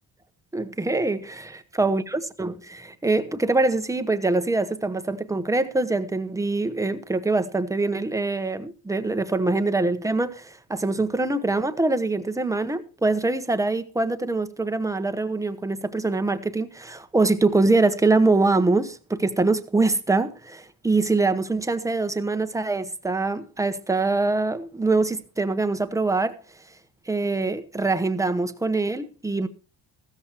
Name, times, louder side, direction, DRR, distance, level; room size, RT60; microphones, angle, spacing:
voice 1, 0.5-26.4 27.1-29.5, right 3 dB, 5° right, 1.0 m, -24 dB
15.0 x 13.5 x 3.0 m
cardioid pair, 130°, 43 cm